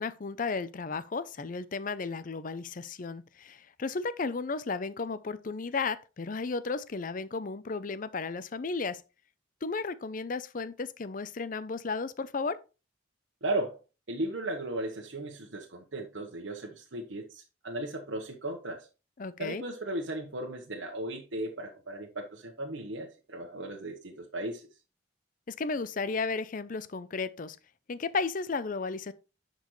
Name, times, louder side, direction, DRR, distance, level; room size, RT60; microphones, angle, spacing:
voice 1, 0.0-9.0 9.6-12.6 19.2-19.6 25.5-27.6 27.9-29.1, left 4 dB, 45° left, 0.5 m, -34 dB
voice 2, 13.4-13.8 14.1-18.8 19.4-24.7, right 1 dB, 90° right, 1.1 m, -36 dB
10.5 x 5.3 x 3.1 m
head